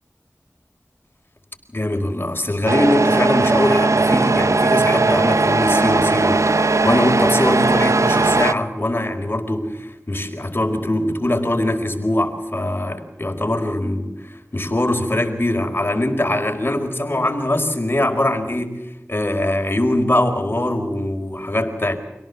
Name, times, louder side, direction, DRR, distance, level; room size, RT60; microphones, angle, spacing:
voice 1, 1.7-18.8 19.1-21.9, left 1 dB, 45° left, 3 dB, 4.8 m, -22 dB
Truck, 2.7-8.5, right 3 dB, 75° right, 0.8 m, -18 dB
26.0 x 18.0 x 7.3 m, 0.94 s
wide cardioid pair, 40°, 5 cm